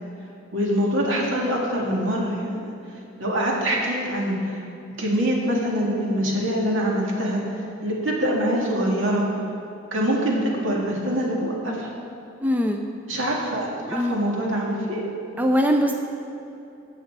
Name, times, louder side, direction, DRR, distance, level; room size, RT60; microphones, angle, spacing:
voice 1, 0.5-2.7 3.2-4.5 5.0-7.4 7.8-9.2 9.9-11.9 13.1-15.0, equal, 75° right, -2 dB, 2.1 m, -24 dB
voice 2, 12.4-12.8 13.9-14.2 15.4-15.9, equal, 10° right, 3 dB, 0.4 m, -21 dB
13.0 x 7.8 x 4.7 m, 2.8 s
head